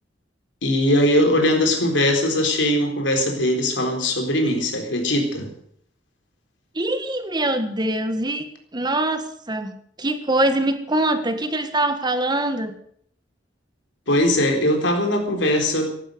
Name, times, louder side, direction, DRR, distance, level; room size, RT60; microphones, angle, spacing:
voice 1, 0.6-5.5 14.1-15.9, left 1 dB, 90° left, 4 dB, 4.0 m, -20 dB
voice 2, 6.7-8.4 8.7-12.7, right 1 dB, 25° right, 9 dB, 1.6 m, -23 dB
15.0 x 11.5 x 7.9 m, 0.64 s
head